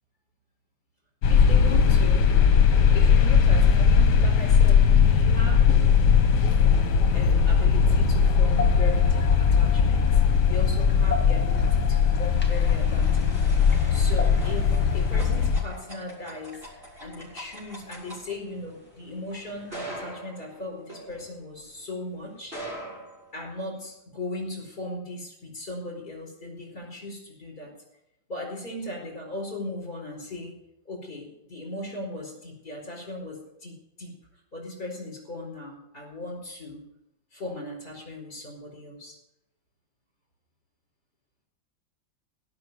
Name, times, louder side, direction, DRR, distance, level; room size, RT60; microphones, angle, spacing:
sound 1, 1.2-15.6, left 6 dB, 60° left, 1.7 m, -19 dB
voice 1, 1.3-2.3 2.9-6.1 7.1-10.2 10.5-16.6 17.0-22.5 23.3-27.7 28.3-30.5 30.8-34.1 34.5-36.8 37.3-39.2, left 1 dB, 25° left, -2 dB, 4.9 m, -38 dB
sound 2, 6.9-20.1, left 3 dB, 5° left, 1.4 m, -40 dB
sound 3, 11.6-21.8 22.4-23.9, equal, 30° right, 5.5 m, -43 dB
17.0 x 6.1 x 9.6 m, 0.86 s
omnidirectional pair, 2.2 m